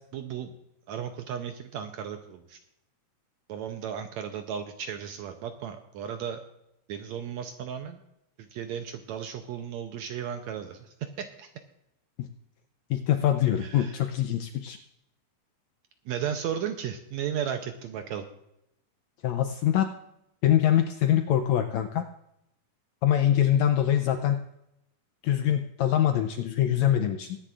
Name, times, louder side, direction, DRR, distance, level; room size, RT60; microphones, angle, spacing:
voice 1, 0.1-0.5 0.9-2.6 3.5-6.4 6.9-8.0 8.4-11.5 13.6-14.0 16.1-18.2, right 8 dB, 80° right, 7 dB, 1.7 m, -35 dB
voice 2, 12.9-14.8 19.2-19.9 20.4-22.1 23.0-24.4 25.2-27.4, left 11 dB, 80° left, 7 dB, 1.6 m, -24 dB
21.5 x 10.0 x 2.4 m, 0.81 s
omnidirectional pair, 3.8 m